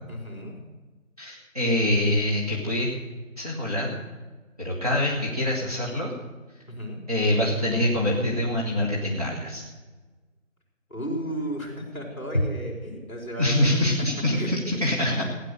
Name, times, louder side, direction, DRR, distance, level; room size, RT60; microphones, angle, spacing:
voice 1, 0.1-0.5 6.6-7.0 10.9-13.7 14.3-14.9, equal, 10° left, -2 dB, 3.9 m, -34 dB
voice 2, 1.2-2.9 3.4-4.0 4.6-6.1 7.1-9.6 13.4-15.2, left 1 dB, 30° right, -5 dB, 1.8 m, -25 dB
16.0 x 9.9 x 6.6 m, 1.3 s
figure-of-eight pair, 175°, 41 cm